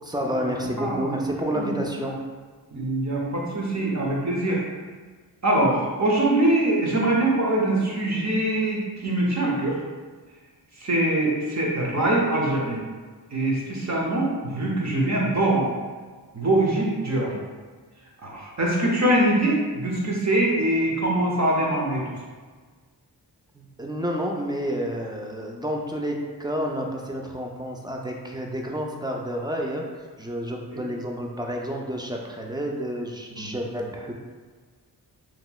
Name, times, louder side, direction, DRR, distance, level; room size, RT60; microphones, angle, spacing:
voice 1, 0.0-2.2 23.8-29.8 30.2-34.1, equal, 10° right, 0 dB, 0.3 m, -29 dB
voice 2, 0.8-1.1 1.5-2.0 2.7-4.6 5.4-9.8 10.8-12.8 13.3-15.7 16.3-17.3 18.2-22.0 33.3-33.5, right 1 dB, 40° right, -3 dB, 0.8 m, -23 dB
2.9 x 2.8 x 2.2 m, 1.5 s
cardioid pair, 55°, 40 cm